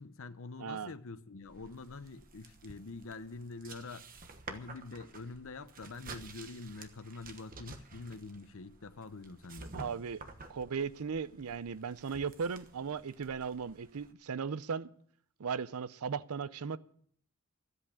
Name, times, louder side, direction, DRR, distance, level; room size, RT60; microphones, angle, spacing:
voice 1, 0.0-4.1 4.5-9.7, left 3 dB, 65° left, 0.8 m, -46 dB
voice 2, 0.6-0.9 9.7-10.2 10.5-14.9 15.4-16.8, right 6 dB, 75° right, 0.5 m, -37 dB
sound 1, 1.4-14.1, right 3 dB, 40° right, 1.2 m, -51 dB
13.0 x 8.2 x 8.4 m
head